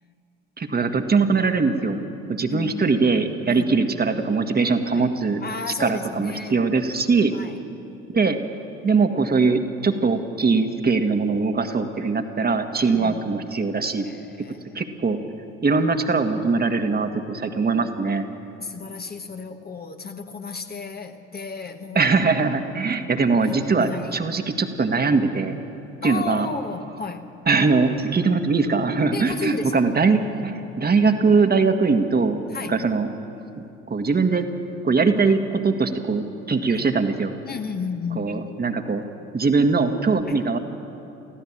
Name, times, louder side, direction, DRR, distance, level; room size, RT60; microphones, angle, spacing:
voice 1, 0.6-2.0 2.3-5.4 5.8-7.3 8.1-8.4 8.8-14.0 14.7-15.2 15.6-18.2 21.9-25.6 26.0-26.5 27.5-32.4 32.7-33.1 33.6-34.5 34.8-37.3 38.1-39.0 39.3-40.6, right 4 dB, 25° right, 6 dB, 1.6 m, -21 dB
voice 2, 2.5-3.9 4.9-5.1 5.4-6.6 7.3-7.6 12.8-13.3 13.9-14.9 17.7-17.8 18.4-22.1 23.4-24.2 26.0-27.2 29.1-29.9 32.5-32.8 36.7-36.8 37.4-38.3 40.3-40.4, left 5 dB, 25° left, 6 dB, 1.2 m, -34 dB
24.5 x 15.0 x 7.3 m, 2.7 s
figure-of-eight pair, 55°, 37 cm